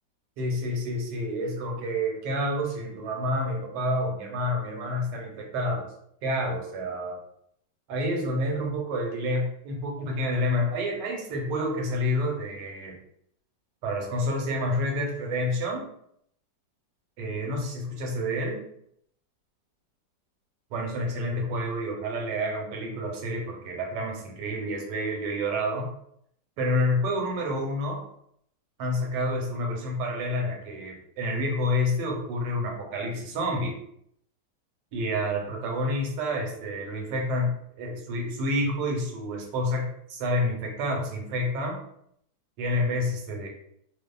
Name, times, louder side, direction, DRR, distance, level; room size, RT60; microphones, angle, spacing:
voice 1, 0.4-5.9 6.2-7.2 7.9-13.0 13.8-15.8 17.2-18.6 20.7-25.9 26.6-28.0 28.8-33.7 34.9-41.8 42.6-43.5, left 1 dB, 90° right, 0 dB, 1.3 m, -29 dB
2.6 x 2.3 x 2.2 m, 0.71 s
omnidirectional pair, 1.9 m